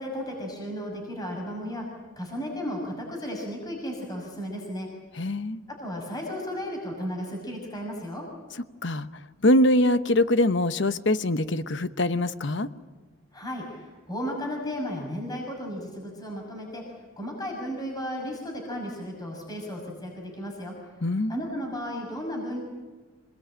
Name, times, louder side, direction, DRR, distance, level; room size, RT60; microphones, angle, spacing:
voice 1, 0.0-1.9 2.2-4.9 5.8-8.2 13.3-20.9 21.3-22.6, equal, 20° left, 0 dB, 6.2 m, -34 dB
voice 2, 5.2-5.6 8.8-9.1 9.4-12.7 21.0-21.3, left 1 dB, 60° left, 12 dB, 1.0 m, -23 dB
26.5 x 21.0 x 9.0 m, 1.4 s
head